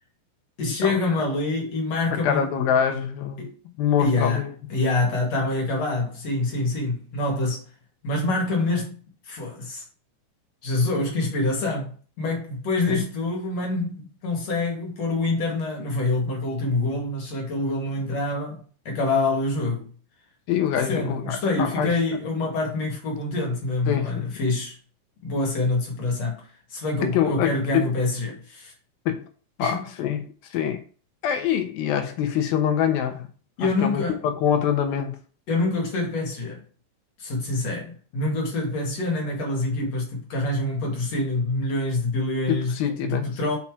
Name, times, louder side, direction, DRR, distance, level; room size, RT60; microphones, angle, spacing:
voice 1, 0.6-2.4 3.4-3.6 4.0-4.4 4.7-7.6 8.0-9.0 9.3-9.8 10.6-18.6 18.8-19.9 20.9-24.7 25.2-28.7 29.6-29.8 33.6-34.2 35.5-36.6 37.2-43.6, left 2 dB, 50° left, 2.8 m, -26 dB
voice 2, 2.1-3.5 3.8-4.5 12.9-13.0 20.5-21.9 23.9-24.3 27.1-27.9 29.1-29.2 29.6-30.8 31.2-33.3 33.6-35.2 42.5-43.3, left 9 dB, 75° left, 2.7 m, -25 dB
5.8 x 5.8 x 4.8 m
omnidirectional pair, 4.5 m